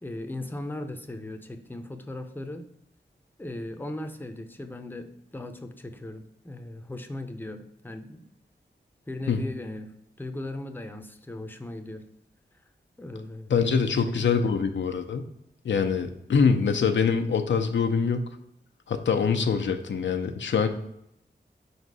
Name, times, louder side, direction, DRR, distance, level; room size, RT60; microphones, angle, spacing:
voice 1, 0.0-2.6 3.4-8.2 9.1-12.0 13.0-13.5 13.9-14.8, left 1 dB, 10° left, 7 dB, 0.6 m, -38 dB
voice 2, 13.5-15.2 15.6-18.3 18.9-20.7, left 5 dB, 85° left, 7 dB, 0.6 m, -24 dB
5.0 x 4.1 x 4.7 m, 0.79 s
wide cardioid pair, 70°, 19 cm